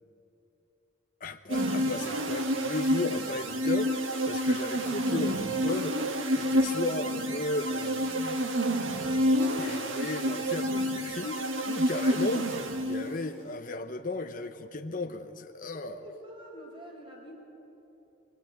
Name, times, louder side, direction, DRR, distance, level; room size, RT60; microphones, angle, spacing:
voice 1, 1.2-8.5 9.6-16.0, left 2 dB, 40° left, 4 dB, 0.9 m, -35 dB
sound 1, 1.5-13.3, equal, 75° right, 1.6 m, -29 dB
voice 2, 15.7-17.3, right 1 dB, 25° right, 0 dB, 4.8 m, -46 dB
23.0 x 22.5 x 9.2 m, 2.9 s
head